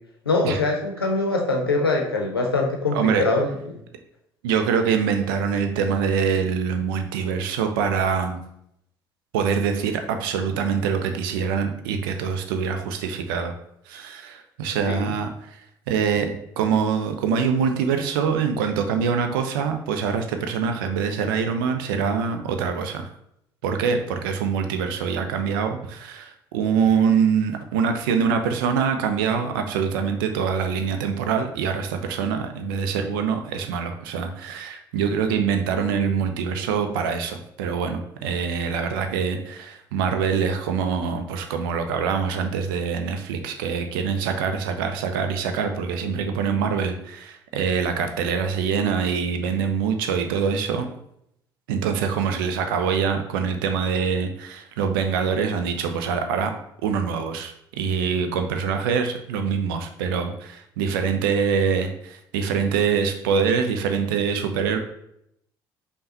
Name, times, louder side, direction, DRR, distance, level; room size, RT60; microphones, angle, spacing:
voice 1, 0.3-3.5 14.9-15.1, left 3 dB, 85° left, 1 dB, 0.6 m, -23 dB
voice 2, 2.9-3.2 4.4-8.4 9.3-13.5 13.9-15.3 15.9-16.3 16.6-23.1 23.6-50.9 51.7-56.5 56.8-64.8, right 6 dB, 65° right, 7 dB, 0.5 m, -24 dB
5.3 x 2.2 x 4.0 m, 0.76 s
figure-of-eight pair, 50°, 12 cm